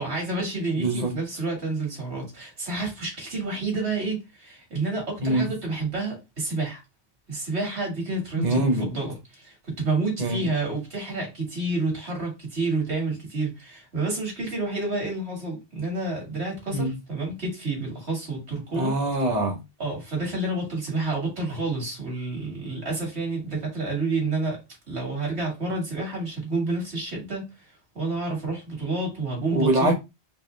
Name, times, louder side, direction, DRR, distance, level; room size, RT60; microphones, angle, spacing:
voice 1, 0.0-6.8 7.3-18.9 19.8-24.6 24.9-27.5 27.9-29.9, right 3 dB, 80° right, 2.3 m, -29 dB
voice 2, 0.7-1.1 5.2-5.5 8.4-8.9 10.2-10.5 16.7-16.9 18.7-19.6 29.5-29.9, right 1 dB, 40° right, 1.1 m, -24 dB
4.6 x 2.6 x 3.3 m
omnidirectional pair, 1.1 m